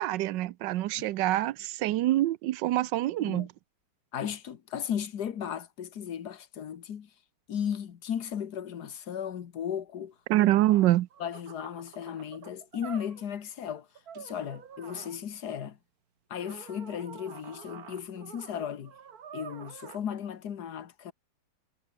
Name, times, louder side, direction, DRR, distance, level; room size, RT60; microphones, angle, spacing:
voice 1, 0.0-3.5 10.3-11.1, right 15 dB, 85° right, 1.4 m, -25 dB
voice 2, 4.1-7.1 7.5-10.1 11.2-13.9 14.2-15.8 16.3-18.9 19.3-21.1, left 8 dB, 65° left, 1.9 m, -36 dB
sound 1, 10.4-10.5 10.6-13.4 14.0-15.2 16.4-20.2, right 7 dB, 60° right, 1.9 m, -47 dB
omnidirectional pair, 1.9 m